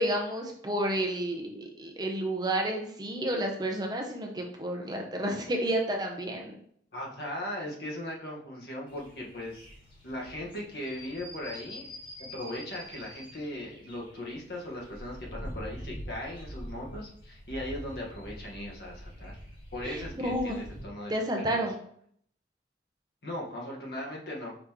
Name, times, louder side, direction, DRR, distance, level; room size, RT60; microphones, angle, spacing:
voice 1, 0.0-6.6 19.8-20.6 21.1-21.8, right 1 dB, 25° right, 2 dB, 0.6 m, -31 dB
voice 2, 6.9-9.7 10.0-11.9 12.2-19.4 19.7-21.6 23.2-24.6, left 1 dB, 65° left, -2 dB, 1.2 m, -38 dB
sound 1, 8.9-20.8, equal, 30° left, 1.3 m, -45 dB
5.0 x 2.9 x 3.6 m, 0.64 s
head